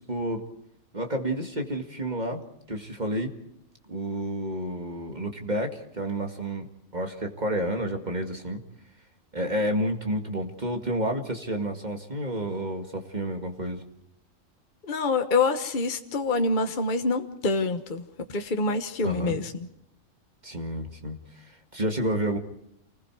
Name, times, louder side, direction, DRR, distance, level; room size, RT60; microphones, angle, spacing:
voice 1, 0.1-0.4 0.9-3.4 3.9-8.6 9.3-13.8 19.0-19.4 20.4-22.4, right 1 dB, 35° right, 4 dB, 2.2 m, -30 dB
voice 2, 14.8-18.0 18.3-19.5, left 3 dB, 40° left, 6 dB, 1.3 m, -26 dB
29.0 x 20.5 x 4.7 m, 0.81 s
omnidirectional pair, 1.4 m